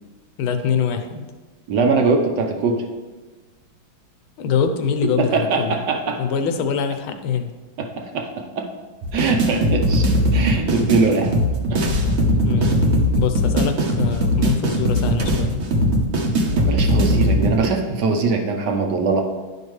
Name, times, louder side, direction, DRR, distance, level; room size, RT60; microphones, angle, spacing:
voice 1, 0.4-1.3 4.4-5.8 6.2-7.5 12.4-12.8 13.1-15.6, left 7 dB, 85° left, 8 dB, 1.5 m, -24 dB
voice 2, 1.7-2.8 5.3-6.2 7.8-8.3 8.6-8.7 9.1-10.1 10.3-11.3 11.7-11.8 16.6-19.2, right 4 dB, 65° right, 3 dB, 1.3 m, -21 dB
sound 1, 9.0-17.7, equal, 50° right, 0.8 m, -19 dB
11.0 x 5.4 x 3.1 m, 1.3 s
omnidirectional pair, 2.2 m